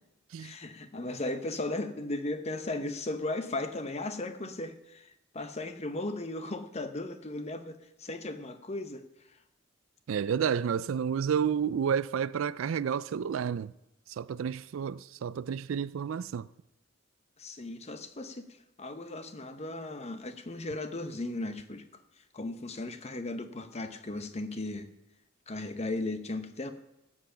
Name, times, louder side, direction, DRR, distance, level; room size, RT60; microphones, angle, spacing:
voice 1, 0.4-5.1 5.3-9.0 17.4-18.5 18.8-21.8 22.3-24.9 25.5-26.7, left 2 dB, 30° left, 0.9 m, -36 dB
voice 2, 10.1-13.7 14.2-16.5, right 7 dB, 70° right, 0.4 m, -30 dB
15.5 x 8.1 x 5.7 m
head